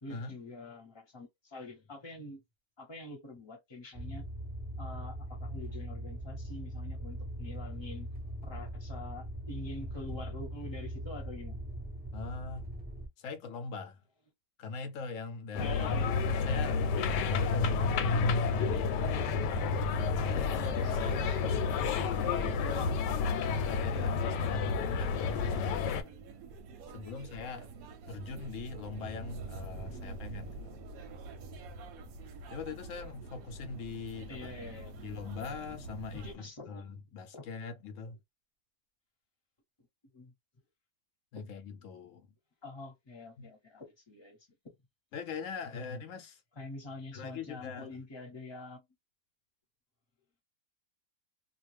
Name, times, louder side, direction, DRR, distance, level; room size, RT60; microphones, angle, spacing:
voice 1, 0.0-2.4 2.8-4.3 4.8-8.1 8.4-11.6 15.6-16.2 22.8-22.9 29.7-30.4 34.3-35.0 36.2-36.9 37.3-37.5 40.1-40.3 42.6-44.4 45.7-45.8 46.6-48.8, left 2 dB, 20° left, 0.9 m, -46 dB
sound 1, 3.9-13.1, right 1 dB, 10° right, 0.4 m, -41 dB
voice 2, 12.1-12.7 13.2-14.0 14.6-17.7 18.0-19.8 20.2-22.9 23.5-26.1 26.9-27.7 28.1-30.8 32.5-34.6 35.0-38.2 41.3-42.3 43.4-43.5 45.1-46.4 47.1-47.9, left 5 dB, 65° left, 0.9 m, -42 dB
sound 2, 15.5-26.0, left 5 dB, 85° left, 1.2 m, -30 dB
sound 3, 20.3-36.4, right 3 dB, 65° right, 0.9 m, -47 dB
2.4 x 2.4 x 3.1 m
omnidirectional pair, 1.8 m